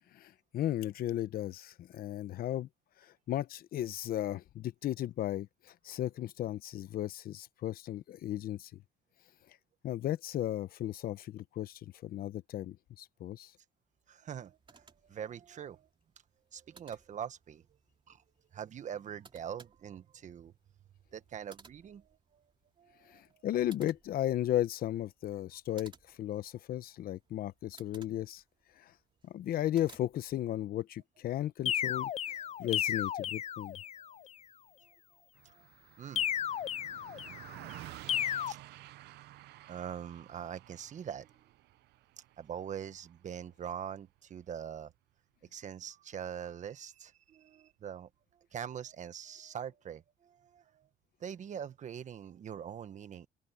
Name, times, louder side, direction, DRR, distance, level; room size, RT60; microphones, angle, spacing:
voice 1, 0.1-2.7 3.0-8.7 9.8-13.5 23.1-28.4 28.8-28.9 29.2-32.1 32.6-33.8, left 12 dB, 60° left, 0.9 m, -35 dB
voice 2, 14.1-15.9 16.5-17.6 18.1-18.2 18.5-20.5 21.1-22.4 22.8-23.4 32.4-32.5 34.8-34.9 35.4-35.6 36.0-36.2 37.1-37.7 38.0-38.7 39.7-41.3 42.4-44.9 45.5-48.1 48.5-50.9 51.2-53.3, right 8 dB, 45° right, 1.4 m, -43 dB
sound 1, 14.4-30.7, right 5 dB, 30° right, 2.8 m, -62 dB
sound 2, 31.7-34.1 36.2-37.5 38.1-38.5, left 10 dB, 40° left, 0.4 m, -33 dB
Car passing by, 35.3-45.0, right 16 dB, 75° right, 0.7 m, -52 dB
open air
cardioid pair, 110°, 17 cm